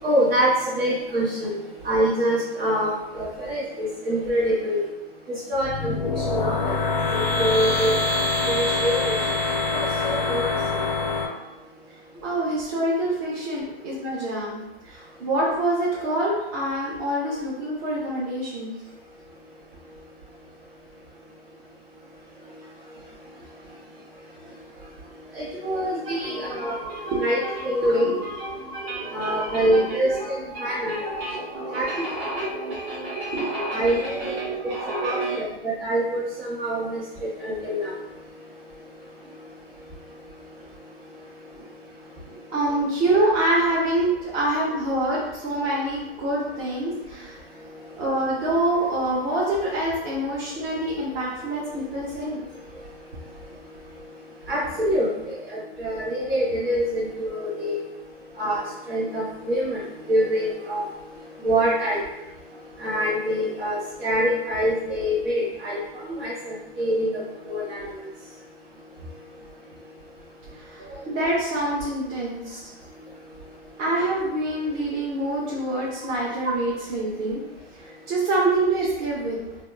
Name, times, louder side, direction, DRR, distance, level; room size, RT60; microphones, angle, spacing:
voice 1, 0.0-0.5 0.8-4.8 5.5-5.9 6.3-6.7 7.1-8.0 8.5-9.1 9.7-10.5 25.4-26.7 27.2-27.4 27.6-28.1 29.1-31.0 31.7-32.0 32.3-32.4 33.7-34.2 35.0-37.0 37.4-37.9 54.5-55.1 55.8-57.8 58.4-59.8 60.1-60.8 61.4-62.0 62.8-65.8 66.2-67.1 67.4-67.8, equal, 80° right, -8 dB, 0.9 m, -25 dB
sound 1, 5.5-11.3, left 3 dB, 40° left, 0.4 m, -25 dB
voice 2, 12.2-18.7 25.6-25.8 26.0-35.4 41.5-41.6 42.3-47.4 47.9-52.4 66.1-66.2 70.5-72.6 73.8-77.4 77.8-79.4, right 1 dB, 30° right, -6 dB, 0.5 m, -27 dB
2.8 x 2.2 x 2.2 m, 0.98 s
hypercardioid pair, 130°, 31 cm